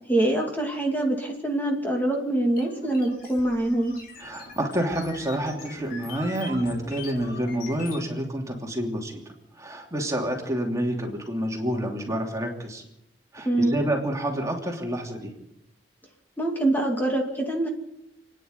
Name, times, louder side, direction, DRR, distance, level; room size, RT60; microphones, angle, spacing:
voice 1, 0.1-3.9 13.4-13.8 16.4-17.7, right 1 dB, 10° left, 0 dB, 2.6 m, -24 dB
sound 1, 2.6-8.0, left 3 dB, 50° left, 4.5 m, -43 dB
voice 2, 4.2-9.2 9.6-12.8 13.3-15.3, right 1 dB, 15° right, 1 dB, 3.0 m, -28 dB
29.0 x 10.0 x 9.5 m, 0.82 s
head